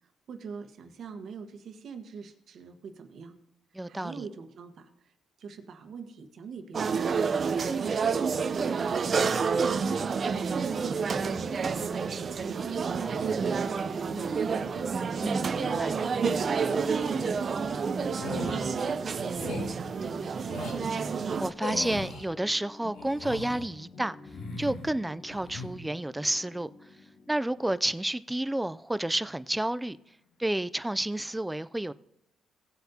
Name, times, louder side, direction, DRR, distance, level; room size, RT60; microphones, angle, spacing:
voice 1, 0.3-3.4 3.9-5.1 5.4-7.3 7.7-8.0 8.4-12.0 12.4-20.7, right 5 dB, 65° right, 1.4 m, -43 dB
voice 2, 3.7-4.3 15.2-15.9 21.1-24.2 24.6-26.7 27.3-30.0 30.4-31.9, right 1 dB, 10° right, 0.4 m, -30 dB
sound 1, 6.7-21.5, right 5 dB, 45° right, 0.7 m, -29 dB
sound 2, 10.8-30.4, left 3 dB, 60° left, 1.6 m, -49 dB
sound 3, 18.1-18.6 19.3-19.7 20.4-20.8 21.6-22.2 22.9-23.7 24.2-24.9 25.3-25.7, left 3 dB, 80° left, 3.6 m, -38 dB
17.5 x 7.9 x 2.9 m
cardioid pair, 90°, 0 cm